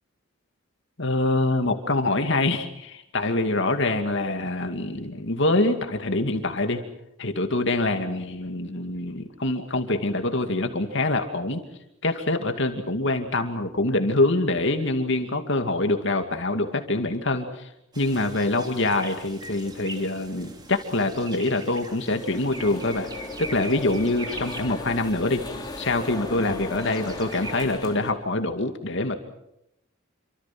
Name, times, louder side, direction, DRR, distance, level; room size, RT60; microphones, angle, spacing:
voice 1, 1.0-6.8 7.2-11.6 12.0-17.7 18.0-23.1 23.4-25.4 25.8-29.1, left 2 dB, 60° left, 6 dB, 2.4 m, -25 dB
sound 1, 17.9-27.6, right 2 dB, 20° right, 3.1 m, -42 dB
sound 2, 22.1-28.1, left 1 dB, 20° left, 2.9 m, -36 dB
28.0 x 25.5 x 6.1 m, 0.80 s
head